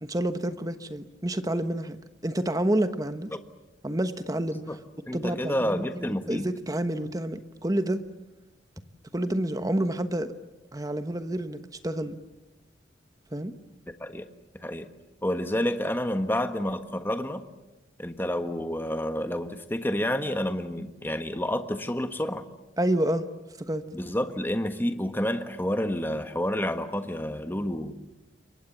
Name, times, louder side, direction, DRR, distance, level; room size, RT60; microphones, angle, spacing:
voice 1, 0.0-3.3 3.8-4.6 5.1-8.0 9.1-10.3 10.7-12.1 13.3-13.5 22.8-23.3 23.7-23.9, right 1 dB, 20° right, 10 dB, 1.1 m, -29 dB
voice 2, 5.1-6.5 14.0-14.3 14.5-14.9 15.2-17.4 18.0-22.4 23.9-27.9, left 1 dB, 10° left, 8 dB, 1.4 m, -29 dB
28.5 x 24.0 x 7.3 m, 1.0 s
head